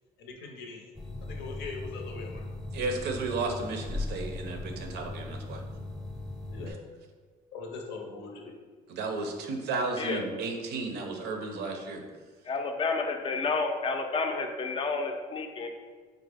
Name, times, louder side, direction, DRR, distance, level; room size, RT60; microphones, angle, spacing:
voice 1, 0.2-0.9 1.2-2.5 5.2-5.3 6.5-6.8 7.5-8.6 10.2-10.3, left 4 dB, 80° left, 2 dB, 0.6 m, -41 dB
sound 1, 0.9-6.7, left 2 dB, ahead, 0.7 m, -38 dB
voice 2, 2.7-5.6 8.9-12.0, right 3 dB, 75° right, 3 dB, 0.5 m, -33 dB
voice 3, 12.5-15.7, left 4 dB, 30° left, 4 dB, 0.4 m, -30 dB
3.6 x 2.0 x 3.3 m, 1.5 s
cardioid pair, 110°, 17 cm